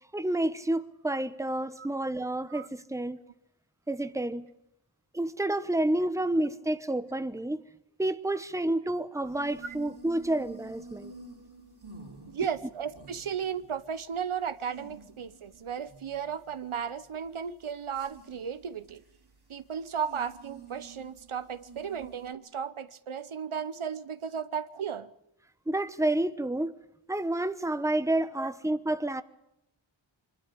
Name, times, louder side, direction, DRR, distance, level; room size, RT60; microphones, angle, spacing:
voice 1, 0.1-3.2 3.9-4.5 5.1-7.6 8.0-11.1 25.7-26.7 27.1-29.2, right 1 dB, 5° right, 1.0 m, -29 dB
sound 1, 9.2-22.3, right 4 dB, 50° right, 3.9 m, -50 dB
voice 2, 12.3-19.0 19.5-25.1 28.4-28.5, right 7 dB, 80° right, 1.0 m, -35 dB
24.0 x 12.5 x 10.0 m
wide cardioid pair, 65°, 49 cm